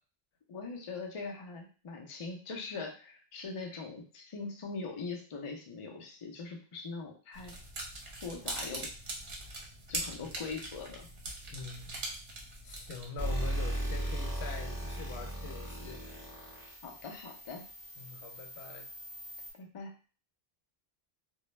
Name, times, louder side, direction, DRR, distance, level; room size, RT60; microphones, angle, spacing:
voice 1, 0.5-7.6 8.2-8.9 9.9-11.1 16.8-17.6 19.6-19.9, left 4 dB, 45° left, 1 dB, 0.4 m, -41 dB
sound 1, 7.3-13.1, right 2 dB, 60° right, 0.8 m, -41 dB
voice 2, 11.5-12.0 12.6-16.0 18.0-18.9, left 4 dB, 85° left, 3 dB, 0.8 m, -44 dB
sound 2, 13.2-19.5, right 1 dB, 20° right, 0.7 m, -38 dB
2.2 x 2.0 x 3.1 m, 0.38 s
omnidirectional pair, 1.1 m